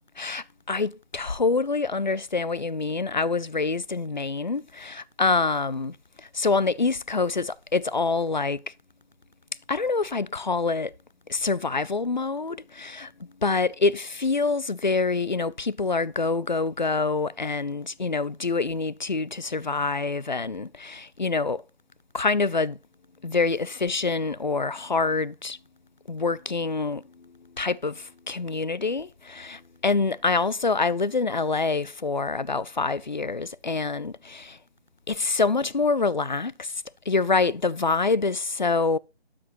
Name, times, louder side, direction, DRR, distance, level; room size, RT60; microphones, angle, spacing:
voice 1, 0.2-8.7 9.7-10.9 11.3-21.6 22.1-22.8 23.2-25.6 26.1-34.6 35.1-39.0, left 4 dB, 45° left, 0.4 m, -26 dB
12.0 x 6.0 x 3.1 m
figure-of-eight pair, 165°, 32 cm